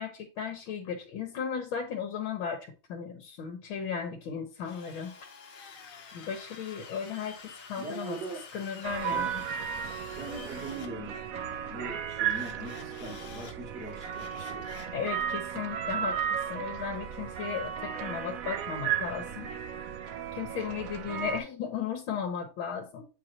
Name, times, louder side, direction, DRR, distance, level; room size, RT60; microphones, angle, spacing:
voice 1, 0.0-2.6 2.9-5.1 6.1-8.2 8.5-9.4 14.9-17.7 18.0-19.5 20.4-23.1, left 7 dB, 80° left, 1.9 m, -35 dB
Drill, 4.6-10.9 12.3-13.5 13.9-15.0, left 5 dB, 65° left, 1.7 m, -49 dB
voice 2, 7.8-8.4 9.1-9.3 10.1-14.9 21.2-21.3, right 2 dB, 35° right, 2.8 m, -42 dB
sound 1, 8.8-21.4, right 8 dB, 70° right, 0.8 m, -35 dB
7.8 x 4.8 x 2.9 m
omnidirectional pair, 2.2 m